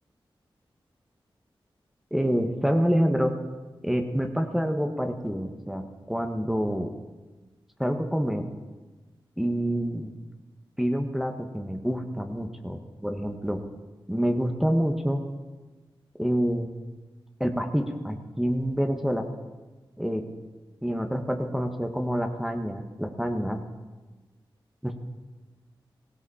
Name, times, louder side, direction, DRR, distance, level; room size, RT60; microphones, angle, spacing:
voice 1, 2.1-3.4 3.8-6.9 7.8-8.5 9.4-10.1 10.8-13.6 14.1-15.2 16.2-16.7 17.4-19.3 20.0-20.3 20.8-23.6 24.8-24.9, equal, 5° right, 5 dB, 1.5 m, -27 dB
18.0 x 16.0 x 4.4 m, 1.2 s
cardioid pair, 50°, 9 cm